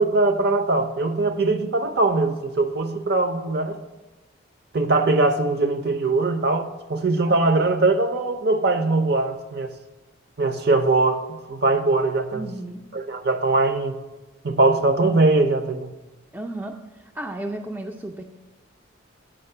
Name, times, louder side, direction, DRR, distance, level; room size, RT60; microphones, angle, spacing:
voice 1, 0.0-3.8 4.7-9.7 10.4-11.2 11.5-12.5 12.9-14.0 14.4-15.9, right 2 dB, 55° right, 9 dB, 0.6 m, -21 dB
voice 2, 12.3-12.8 16.3-18.2, right 1 dB, 10° right, 3 dB, 0.4 m, -34 dB
8.8 x 5.2 x 6.6 m, 1.1 s
head